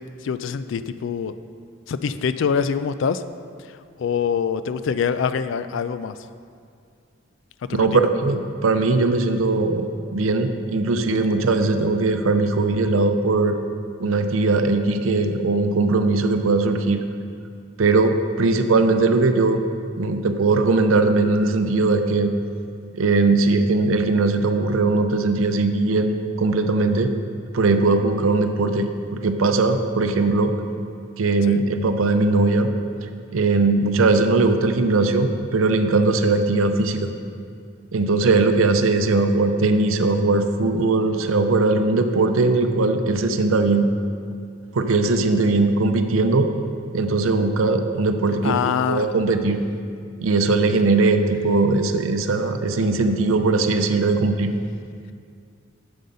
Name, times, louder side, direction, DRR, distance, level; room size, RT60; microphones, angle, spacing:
voice 1, 0.2-1.3 1.9-3.2 4.0-6.2 7.7-8.1 31.5-31.6 48.4-49.1, left 6 dB, 65° left, 12 dB, 0.3 m, -24 dB
voice 2, 7.7-13.6 14.0-17.0 17.8-19.6 20.0-22.3 23.0-27.1 27.5-30.5 31.2-32.7 33.3-37.1 37.9-43.9 44.7-46.5 46.9-48.6 48.9-49.6 50.2-54.5, right 3 dB, 85° right, 7 dB, 0.6 m, -20 dB
7.4 x 7.0 x 5.5 m, 2.3 s
head